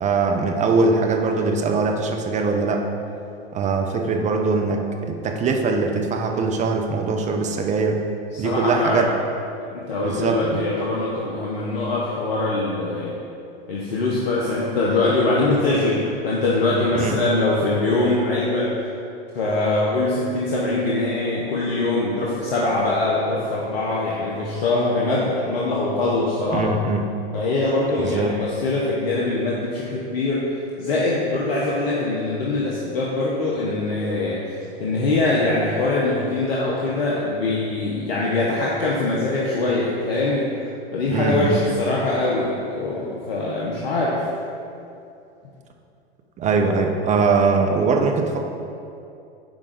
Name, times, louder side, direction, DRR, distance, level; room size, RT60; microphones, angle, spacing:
voice 1, 0.0-2.9 3.5-8.0 8.4-9.1 10.0-10.6 17.0-17.2 26.5-27.0 28.0-28.4 41.1-41.6 46.4-48.4, right 4 dB, 25° right, 4 dB, 0.7 m, -21 dB
voice 2, 8.3-9.1 9.7-13.1 13.7-18.7 19.3-26.7 27.3-30.5 30.8-34.4 34.8-40.5 40.9-44.2, left 2 dB, 70° left, -5 dB, 1.2 m, -23 dB
9.1 x 3.7 x 5.2 m, 2.6 s
hypercardioid pair, 100°, 31 cm